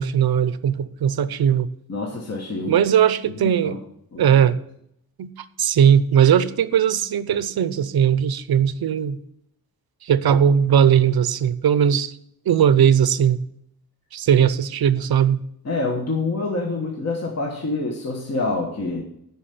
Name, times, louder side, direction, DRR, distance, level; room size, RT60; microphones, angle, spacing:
voice 1, 0.0-1.7 2.7-3.8 4.2-4.5 5.2-5.3 5.6-9.2 10.0-12.1 12.5-13.4 14.1-15.4, right 8 dB, 80° right, 15 dB, 0.7 m, -18 dB
voice 2, 1.9-2.7 3.2-3.8 4.1-4.2 15.6-19.0, left 3 dB, 45° left, 0 dB, 1.4 m, -27 dB
10.0 x 5.7 x 7.8 m, 0.73 s
wide cardioid pair, 165°, 36 cm